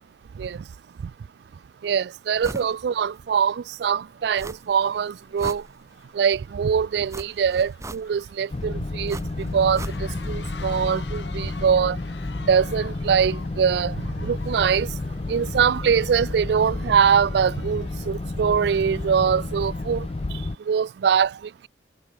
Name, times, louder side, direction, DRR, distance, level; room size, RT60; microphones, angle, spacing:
voice 1, 1.8-5.6 6.1-9.9 10.3-12.0 12.5-14.0 14.2-14.9 15.3-20.1 20.7-21.4, right 7 dB, 65° right, 0.3 m, -23 dB
sound 1, 2.4-2.7 3.1-3.2 4.4-4.9 5.2-6.2 7.1-8.4 9.1-10.3 10.6-10.7, right 2 dB, 15° right, 1.1 m, -38 dB
sound 2, 2.6-2.7 3.5-3.7 4.0-20.0, left 5 dB, 80° left, 2.2 m, -49 dB
sound 3, 8.5-20.6, left 2 dB, 30° left, 0.5 m, -31 dB
head